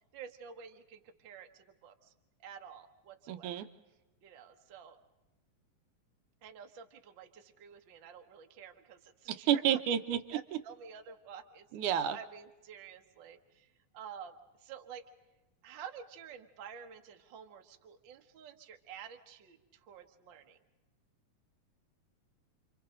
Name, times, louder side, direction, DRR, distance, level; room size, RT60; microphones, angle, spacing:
voice 1, 0.1-2.1 2.4-3.7 4.2-5.0 6.4-9.8 10.3-11.6 12.1-13.7 13.9-15.0 15.6-20.6, right 7 dB, 45° right, 4 dB, 1.6 m, -50 dB
voice 2, 3.3-3.7 9.3-10.4 11.7-12.2, right 10 dB, 70° right, 9 dB, 2.4 m, -30 dB
30.0 x 27.5 x 3.9 m, 1.1 s
omnidirectional pair, 3.9 m